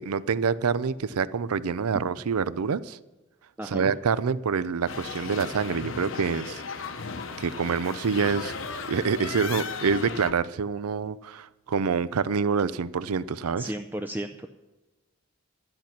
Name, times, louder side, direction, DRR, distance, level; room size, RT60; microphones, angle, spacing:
voice 1, 0.0-3.0 3.7-6.6 7.4-8.5 8.9-13.7, right 5 dB, 85° right, 18 dB, 0.5 m, -26 dB
voice 2, 3.6-3.9 13.6-14.5, right 1 dB, 10° right, 6 dB, 0.4 m, -34 dB
sound 1, 4.9-10.3, left 5 dB, 60° left, 0.9 m, -36 dB
12.0 x 11.0 x 5.9 m, 1.1 s
head